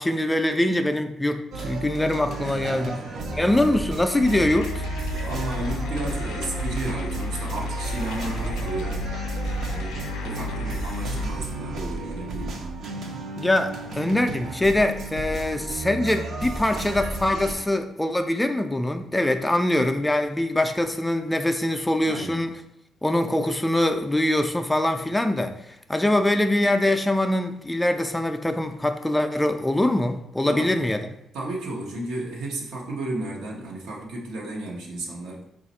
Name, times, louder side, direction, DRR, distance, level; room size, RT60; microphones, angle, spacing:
voice 1, 0.0-3.0 3.3-4.8 13.4-22.5 23.0-31.1, left 1 dB, 10° left, 6 dB, 0.3 m, -23 dB
sound 1, 1.5-17.5, right 2 dB, 60° right, 0.6 m, -33 dB
voice 2, 2.4-3.5 5.2-9.0 9.7-12.6 22.1-22.5 30.4-30.7 31.3-35.4, right 2 dB, 90° right, -2 dB, 0.9 m, -33 dB
sound 2, 4.2-11.3, left 2 dB, 90° left, 0.3 m, -32 dB
4.1 x 2.4 x 4.1 m, 0.78 s
cardioid pair, 90°, 0 cm